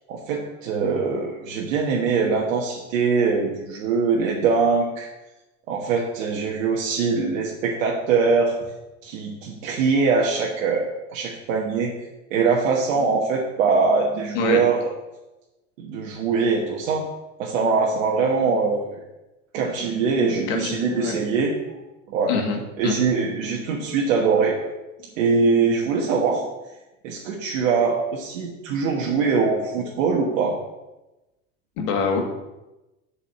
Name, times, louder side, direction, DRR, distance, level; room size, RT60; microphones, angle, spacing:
voice 1, 0.1-5.1 5.7-8.5 9.0-11.9 12.3-14.9 15.8-17.1 17.4-19.0 19.5-21.5 22.1-22.3 22.8-24.6 25.2-26.4 27.0-30.6, right 4 dB, 75° right, -2 dB, 1.4 m, -22 dB
voice 2, 20.5-21.1 22.3-23.0 31.8-32.2, left 5 dB, 70° left, 3 dB, 1.8 m, -25 dB
7.0 x 4.8 x 6.9 m, 1.0 s
supercardioid pair, 105°, 39 cm